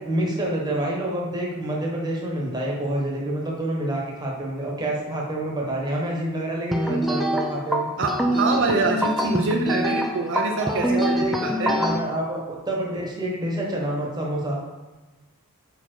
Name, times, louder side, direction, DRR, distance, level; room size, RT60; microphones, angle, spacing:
voice 1, 0.0-7.9 10.6-14.6, right 1 dB, 20° right, -2 dB, 1.1 m, -27 dB
sound 1, 6.7-12.0, equal, ahead, 0.3 m, -24 dB
voice 2, 8.0-11.8, right 3 dB, 55° right, 2 dB, 0.5 m, -25 dB
5.5 x 4.5 x 4.5 m, 1.1 s
head